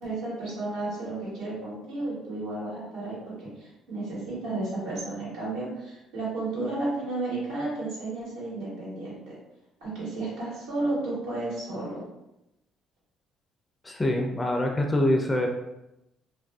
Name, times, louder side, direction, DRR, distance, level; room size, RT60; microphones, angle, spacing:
voice 1, 0.0-9.2 9.8-12.0, right 2 dB, 90° right, -8 dB, 1.2 m, -32 dB
voice 2, 13.8-15.5, left 1 dB, 20° left, 2 dB, 0.3 m, -25 dB
2.4 x 2.3 x 2.3 m, 0.90 s
supercardioid pair, 70°, 0 cm